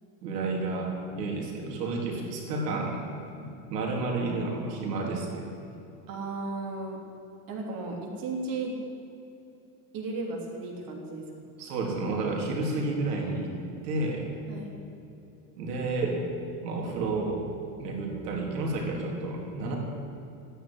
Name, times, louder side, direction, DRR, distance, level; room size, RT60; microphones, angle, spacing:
voice 1, 0.2-3.0 3.3-5.5 11.6-13.5 13.8-14.3 15.6-16.2 16.6-17.5 17.8-19.8, right 3 dB, 80° right, 0 dB, 3.9 m, -31 dB
voice 2, 6.1-7.0 7.5-8.7 9.9-11.2 14.5-14.7, right 3 dB, 45° right, 0 dB, 3.4 m, -35 dB
14.5 x 10.0 x 9.8 m, 2.8 s
supercardioid pair, 110°, 47 cm